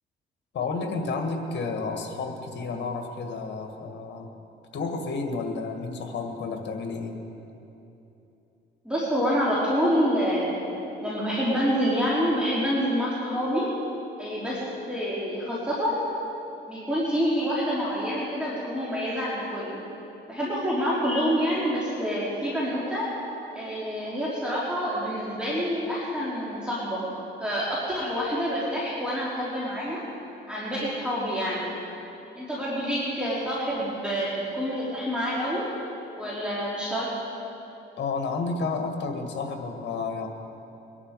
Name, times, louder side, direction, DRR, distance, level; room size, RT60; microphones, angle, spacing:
voice 1, 0.5-4.3 4.7-7.2 38.0-40.3, left 4 dB, 65° left, 4 dB, 1.9 m, -31 dB
voice 2, 8.8-10.7 11.0-13.7 14.2-14.6 14.9-16.1 16.7-19.8 20.3-23.1 23.5-27.0 27.4-30.0 30.5-31.7 32.3-35.7 36.2-37.1, equal, 5° right, -8 dB, 3.4 m, -27 dB
22.5 x 11.0 x 4.8 m, 2.9 s
cardioid pair, 90°, 20 cm